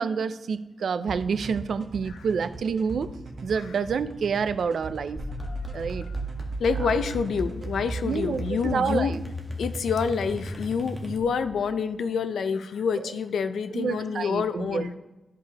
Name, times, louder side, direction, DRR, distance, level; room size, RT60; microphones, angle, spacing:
voice 1, 0.0-3.1 3.4-5.2 5.7-6.1 8.0-9.2 13.7-14.9, right 6 dB, 70° right, 13 dB, 0.3 m, -28 dB
sound 1, 1.1-8.8, right 3 dB, 50° right, 0.9 m, -41 dB
sound 2, 5.2-11.5, right 1 dB, 5° right, 1.1 m, -34 dB
voice 2, 5.4-6.2 6.6-9.2 9.6-15.0, left 6 dB, 85° left, 11 dB, 0.5 m, -28 dB
13.0 x 4.7 x 2.9 m, 1.1 s
wide cardioid pair, 135°, 0 cm